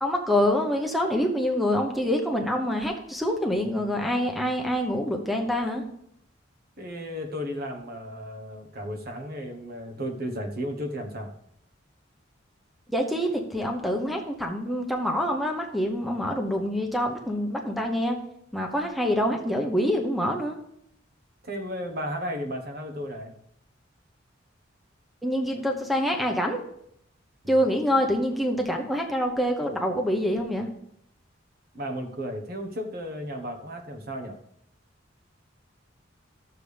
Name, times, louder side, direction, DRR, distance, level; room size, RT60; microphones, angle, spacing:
voice 1, 0.0-5.8 12.9-18.2 18.5-20.5 25.2-26.6 27.5-30.7, equal, ahead, 3 dB, 0.8 m, -26 dB
voice 2, 6.8-11.3 21.4-23.3 31.7-34.4, equal, 50° right, 4 dB, 1.2 m, -34 dB
13.5 x 6.7 x 3.4 m, 0.73 s
head